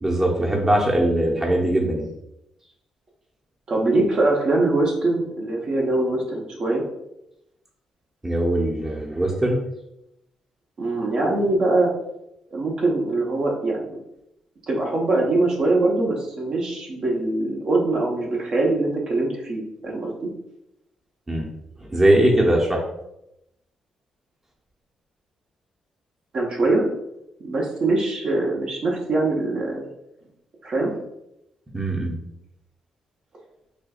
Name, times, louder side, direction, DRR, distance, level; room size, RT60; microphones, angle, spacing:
voice 1, 0.0-2.1 8.2-9.6 21.3-21.5 21.9-22.8 31.7-32.2, right 1 dB, 20° right, -1 dB, 0.7 m, -20 dB
voice 2, 3.7-6.8 10.8-11.9 12.5-14.0 14.7-20.1 26.3-26.8 27.4-29.8 30.6-30.9, right 2 dB, 55° right, -1 dB, 0.9 m, -22 dB
4.3 x 2.3 x 2.4 m, 0.83 s
supercardioid pair, 55°, 2 cm